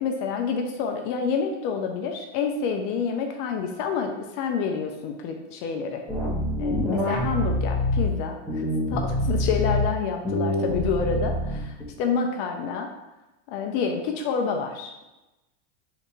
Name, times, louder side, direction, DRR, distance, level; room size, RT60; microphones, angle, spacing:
voice 1, 0.0-6.0 6.6-12.9 13.5-15.2, left 5 dB, 50° left, 4 dB, 0.6 m, -28 dB
sound 1, 6.1-8.1 8.5-9.8 10.2-11.8, left 1 dB, ahead, 1.0 m, -25 dB
3.4 x 2.9 x 4.3 m, 1.0 s
supercardioid pair, 140°, 36 cm